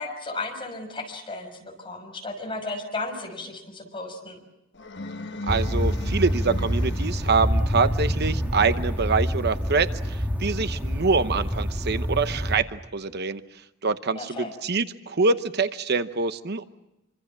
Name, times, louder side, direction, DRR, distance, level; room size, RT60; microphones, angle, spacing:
voice 1, 0.0-4.4 14.1-14.5, left 2 dB, 25° left, 2 dB, 6.1 m, -34 dB
sound 1, 4.7-7.6, left 2 dB, 60° left, 1.2 m, -38 dB
sound 2, 5.5-12.6, equal, 10° right, 2.2 m, -27 dB
voice 2, 5.5-13.4 13.8-16.6, right 4 dB, 55° right, 11 dB, 0.9 m, -25 dB
27.0 x 25.5 x 7.5 m, 0.95 s
head